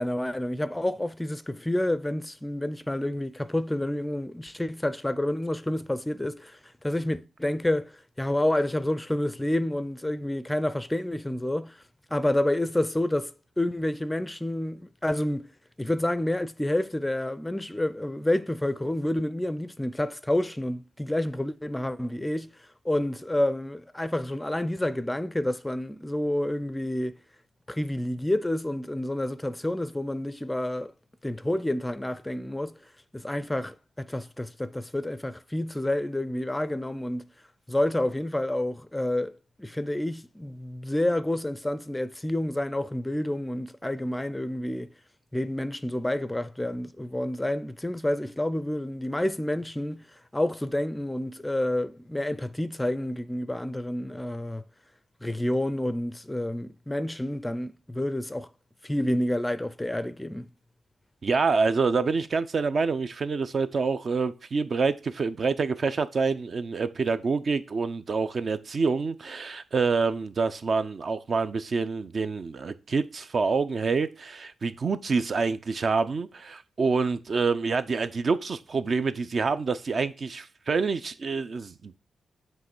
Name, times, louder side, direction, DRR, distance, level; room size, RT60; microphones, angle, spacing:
voice 1, 0.0-11.8 12.1-15.5 15.8-22.5 22.8-27.2 27.7-30.9 31.2-32.7 33.1-37.2 37.7-44.9 45.3-50.0 50.3-54.6 55.2-58.5 58.8-60.5, left 1 dB, 10° left, 0.5 m, -29 dB
voice 2, 61.2-82.0, right 4 dB, 50° right, 0.6 m, -27 dB
7.6 x 3.1 x 6.0 m
cardioid pair, 95°, 0 cm